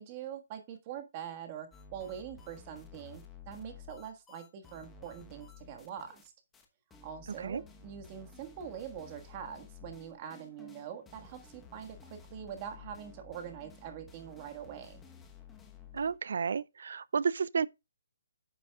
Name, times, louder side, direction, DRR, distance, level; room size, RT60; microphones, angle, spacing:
voice 1, 0.0-6.3 7.0-15.0, right 9 dB, 25° right, 1.6 m, -44 dB
sound 1, 1.7-6.3 6.5-6.6 6.9-16.2, left 6 dB, 10° left, 1.0 m, -53 dB
voice 2, 15.9-17.7, right 6 dB, 65° right, 0.4 m, -31 dB
10.5 x 8.1 x 2.3 m
hypercardioid pair, 160°, 0 cm